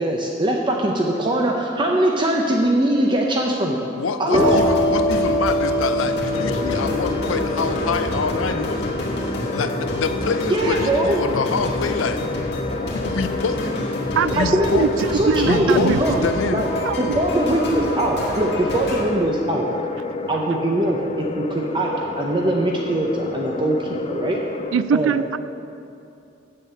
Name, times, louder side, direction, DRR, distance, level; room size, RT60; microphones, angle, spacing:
voice 1, 0.0-3.8 4.2-4.6 10.5-11.2 14.4-14.9 15.1-16.2 16.5-16.7 17.0-19.7 20.3-21.9 22.2-24.4 24.9-25.1, right 1 dB, 25° right, 0.7 m, -21 dB
voice 2, 4.0-8.9 9.5-12.3 12.9-13.7 14.3-14.8 15.4-16.7, left 5 dB, 90° left, 0.6 m, -26 dB
sound 1, 4.3-11.8, equal, 45° right, 2.4 m, -25 dB
sound 2, 4.4-19.0, left 1 dB, 60° left, 1.8 m, -29 dB
sound 3, 6.3-24.8, left 3 dB, 30° left, 0.3 m, -30 dB
voice 3, 14.1-16.3 16.8-17.2 24.7-25.4, right 6 dB, 75° right, 0.3 m, -23 dB
8.4 x 7.5 x 6.8 m
head